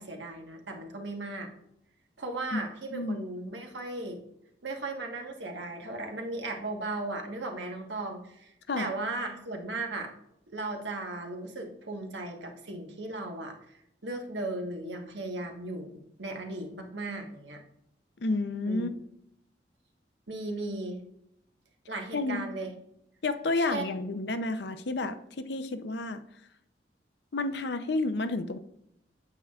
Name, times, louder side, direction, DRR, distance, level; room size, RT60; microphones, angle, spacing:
voice 1, 0.0-1.5 2.2-4.2 4.6-10.1 10.5-13.8 14.0-17.6 18.7-18.9 20.3-21.0 21.9-22.7 23.6-23.8, right 2 dB, 80° right, 3 dB, 1.3 m, -36 dB
voice 2, 2.5-3.2 8.7-8.9 18.2-18.9 22.1-22.5 23.2-26.2 27.3-28.6, left 2 dB, 65° left, 10 dB, 0.6 m, -30 dB
9.0 x 7.6 x 2.4 m, 0.78 s
head